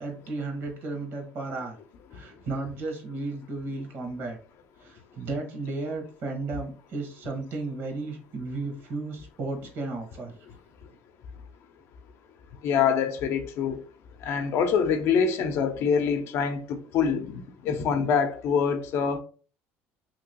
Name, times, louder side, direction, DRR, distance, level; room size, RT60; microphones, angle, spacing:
voice 1, 0.0-1.8 2.1-4.4 4.8-10.4, right 3 dB, 60° right, 1.2 m, -34 dB
voice 2, 12.6-13.8 14.2-19.2, left 6 dB, 65° left, 0.6 m, -25 dB
2.9 x 2.9 x 2.8 m
supercardioid pair, 105°, 5 cm